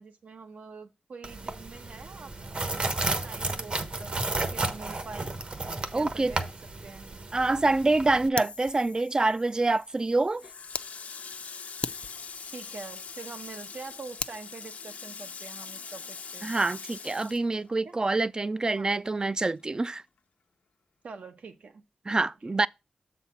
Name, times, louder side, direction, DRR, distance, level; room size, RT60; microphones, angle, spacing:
voice 1, 0.0-4.2 4.5-5.3 5.9-6.5 6.8-7.1 12.4-16.5 17.8-18.0 18.7-19.0 21.0-21.8 22.2-22.7, right 4 dB, 80° right, 1.0 m, -45 dB
sound 1, 1.2-8.3, right 2 dB, 50° right, 1.0 m, -33 dB
voice 2, 5.9-6.3 7.3-10.4 16.4-20.0 22.1-22.7, right 2 dB, 30° right, 0.3 m, -26 dB
Fire, 8.4-10.9 11.3-11.4 11.8-14.4, left 4 dB, 50° left, 0.4 m, -40 dB
Water tap faucet, 10.4-18.2 18.5-19.8, left 5 dB, 85° left, 0.7 m, -43 dB
7.2 x 4.1 x 5.7 m
wide cardioid pair, 75°, 3 cm